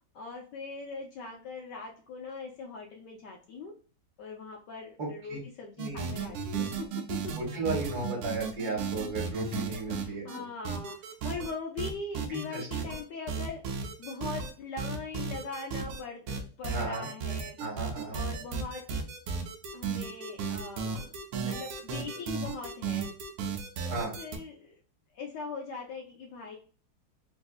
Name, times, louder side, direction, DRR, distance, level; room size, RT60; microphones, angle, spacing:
voice 1, 0.1-3.7 4.2-7.3 9.9-13.6 14.0-17.6 18.1-19.0 19.7-21.1 21.4-23.1 23.8-24.7 25.1-26.6, left 4 dB, 70° left, 0 dB, 1.1 m, -41 dB
voice 2, 5.0-5.4 5.8-6.3 7.4-10.4 12.3-12.9 16.7-17.1 17.6-18.3 23.9-24.1, right 3 dB, 50° right, -2 dB, 1.7 m, -35 dB
sound 1, 5.8-10.4 10.6-11.5 11.8-13.0 13.3-14.5 14.8-16.0 16.3-24.4, right 5 dB, 90° right, 1.5 m, -34 dB
4.1 x 2.6 x 2.3 m, 0.38 s
omnidirectional pair, 2.3 m